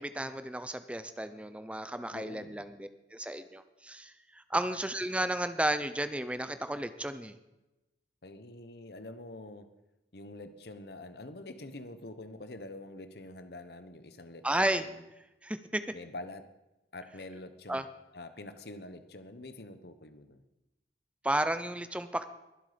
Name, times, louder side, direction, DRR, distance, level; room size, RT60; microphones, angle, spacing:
voice 1, 0.0-7.4 14.4-14.9 15.4-15.8 17.7-17.8 21.2-22.2, right 1 dB, 5° right, 11 dB, 0.6 m, -33 dB
voice 2, 2.1-2.6 4.5-4.6 8.2-9.7 10.1-15.0 15.9-16.5 16.9-17.8 18.1-20.4, left 2 dB, 60° left, 10 dB, 1.0 m, -46 dB
22.0 x 8.0 x 5.1 m, 0.97 s
head